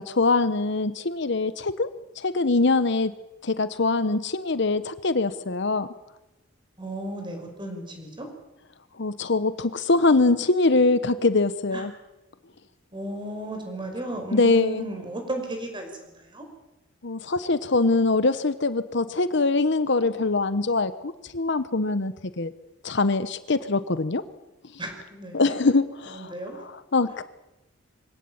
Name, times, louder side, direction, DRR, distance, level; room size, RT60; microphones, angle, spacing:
voice 1, 0.0-1.9 2.2-3.1 3.4-5.9 9.0-11.9 14.3-14.8 17.0-22.5 22.8-24.2 25.3-26.3 26.9-27.2, left 3 dB, 60° left, 13 dB, 1.0 m, -23 dB
voice 2, 6.8-8.3 11.7-11.9 12.9-16.5 24.8-25.6 26.1-26.6, right 1 dB, 25° right, 4 dB, 5.5 m, -35 dB
24.0 x 17.5 x 8.7 m, 0.94 s
head